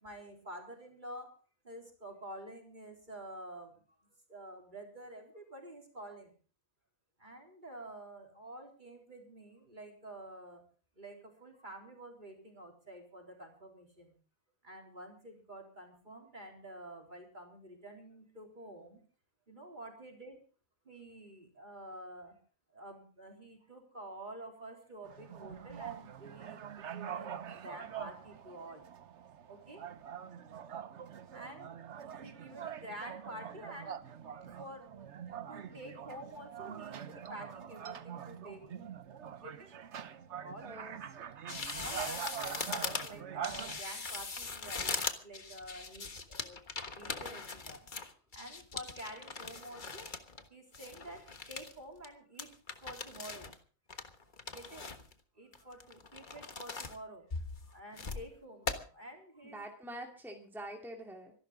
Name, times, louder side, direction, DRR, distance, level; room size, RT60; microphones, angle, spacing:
voice 1, 0.0-1.3 1.7-3.7 4.3-6.3 7.2-10.6 11.0-14.1 14.6-19.0 19.5-20.4 20.9-22.3 22.7-28.8 29.5-29.8 31.3-31.7 32.2-34.0 34.6-34.9 35.5-38.8 39.4-39.7 40.4-41.0 41.5-46.6 46.9-47.8 48.3-50.1 50.5-51.2 51.5-52.5 52.8-53.5 54.5-54.9 55.4-57.2 57.7-59.6, right 1 dB, 35° right, 1 dB, 4.0 m, -49 dB
sound 1, 25.0-43.8, right 8 dB, 60° right, 1.2 m, -44 dB
voice 2, 40.6-40.9 59.5-61.3, right 1 dB, ahead, 1 dB, 2.5 m, -45 dB
sound 2, 41.5-50.4 50.7-51.7 52.0-52.1 52.4-53.6 53.9-55.1 55.5-57.0 57.3-58.3 58.7-58.8, left 4 dB, 35° left, 1.5 m, -40 dB
25.5 x 12.0 x 3.7 m, 0.37 s
omnidirectional pair, 1.4 m